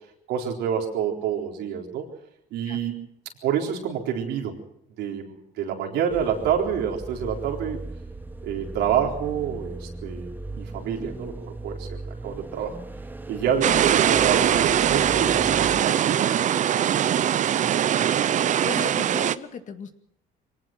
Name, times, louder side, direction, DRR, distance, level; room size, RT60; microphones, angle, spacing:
voice 1, 0.3-2.1 2.5-3.0 3.4-4.6 5.0-7.8 8.4-12.8 13.3-17.5, right 8 dB, 85° right, 1 dB, 4.1 m, -28 dB
sound 1, 6.1-15.8, right 2 dB, 10° right, 1.2 m, -38 dB
sound 2, 13.6-19.3, right 10 dB, 45° right, 0.7 m, -21 dB
voice 2, 18.6-20.0, left 6 dB, 50° left, 8 dB, 2.2 m, -36 dB
24.0 x 18.5 x 6.1 m, 0.75 s
cardioid pair, 110°, 17 cm